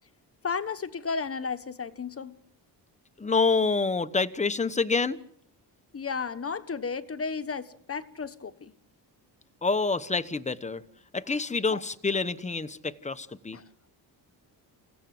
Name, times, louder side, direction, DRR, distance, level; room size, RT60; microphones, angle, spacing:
voice 1, 0.4-2.4 5.9-8.7 11.7-11.8 13.5-13.7, left 5 dB, 30° left, 1.4 m, -33 dB
voice 2, 3.2-5.2 9.6-10.8 11.1-13.6, left 4 dB, 15° left, 1.1 m, -27 dB
28.5 x 17.0 x 7.7 m
cardioid pair, 125°, 44 cm